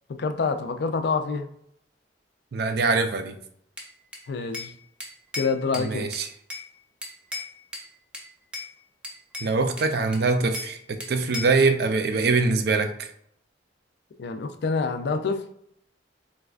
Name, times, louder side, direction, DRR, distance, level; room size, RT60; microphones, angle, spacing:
voice 1, 0.1-1.5 4.3-4.7 5.3-6.1 14.2-15.4, left 4 dB, 65° left, 8 dB, 0.4 m, -27 dB
voice 2, 2.5-3.4 5.8-6.3 9.4-13.1, right 4 dB, 60° right, 7 dB, 0.4 m, -23 dB
Bell / Glass, 3.8-4.7 5.0-6.7 7.0-7.9 8.1-8.7 9.0-10.7 11.0-11.6, left 2 dB, 5° right, 0.5 m, -37 dB
4.1 x 2.3 x 2.4 m, 0.69 s
head